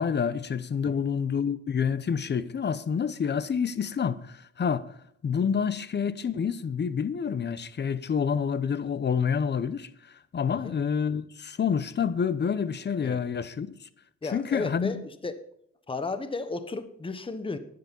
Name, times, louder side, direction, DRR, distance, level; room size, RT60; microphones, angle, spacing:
voice 1, 0.0-4.9 5.2-9.9 10.3-13.7 14.3-15.0, left 7 dB, 35° left, 0.8 m, -28 dB
voice 2, 14.2-15.4 15.9-17.6, left 3 dB, 15° left, 1.0 m, -34 dB
10.5 x 9.6 x 5.3 m
cardioid pair, 90°, 30 cm